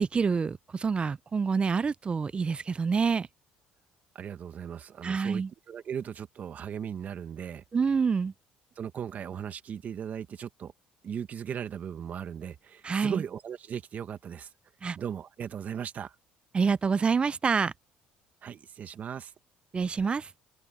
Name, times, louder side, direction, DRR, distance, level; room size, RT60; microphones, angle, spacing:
voice 1, 0.0-3.3 5.0-5.5 7.7-8.3 12.8-13.2 14.8-15.0 16.5-17.7 19.7-20.3, right 5 dB, 30° right, 0.6 m, -27 dB
voice 2, 4.2-7.6 8.8-10.7 11.0-14.5 15.0-16.2 18.4-19.3, right 8 dB, 50° right, 1.9 m, -37 dB
open air
supercardioid pair, 85°, 4 cm